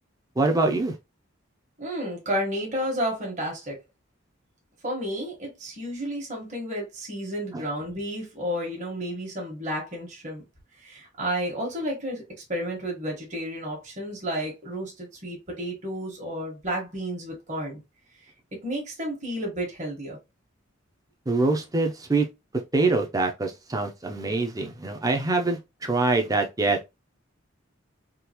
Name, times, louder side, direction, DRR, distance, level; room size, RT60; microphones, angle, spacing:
voice 1, 0.4-0.9 7.5-7.6 21.3-22.3 22.7-26.8, right 3 dB, 20° right, 0.6 m, -24 dB
voice 2, 1.8-3.8 4.8-10.4 10.8-12.2 12.5-17.8 18.6-20.2, equal, 35° right, 1.4 m, -31 dB
3.7 x 2.5 x 2.9 m
head